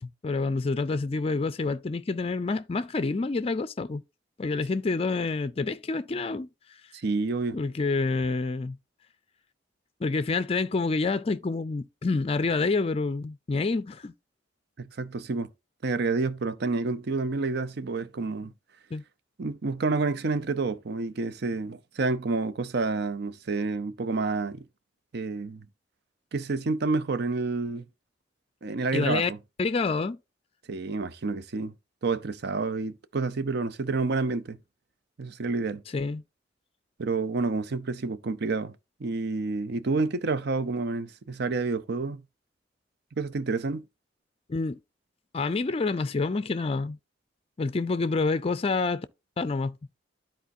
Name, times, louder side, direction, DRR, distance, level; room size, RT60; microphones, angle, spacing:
voice 1, 0.0-4.0 4.4-6.5 7.5-8.8 10.0-14.1 18.9-19.0 28.9-29.3 29.6-30.2 35.9-36.2 44.5-44.8 45.3-47.0 47.6-49.1 49.4-49.7, left 3 dB, 30° left, 0.4 m, -28 dB
voice 2, 6.9-7.6 14.8-15.5 15.8-18.5 19.4-24.7 25.1-25.6 26.3-27.8 28.6-29.4 30.7-31.7 32.0-34.6 35.2-35.8 37.0-38.7 39.0-42.2 43.2-43.8, right 3 dB, 60° right, 0.6 m, -29 dB
12.5 x 4.3 x 2.6 m
head